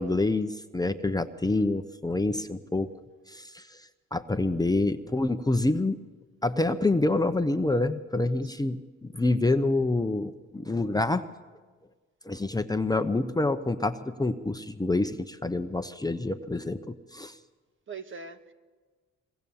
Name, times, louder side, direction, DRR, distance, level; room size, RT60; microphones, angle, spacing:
voice 1, 0.0-2.9 3.3-3.8 4.1-6.0 6.4-11.3 12.2-17.3, left 2 dB, 15° left, 8 dB, 0.9 m, -27 dB
voice 2, 8.4-8.8 17.9-18.5, right 5 dB, 40° right, 7 dB, 1.7 m, -42 dB
26.0 x 22.5 x 7.2 m, 1.4 s
cardioid pair, 90°, 30 cm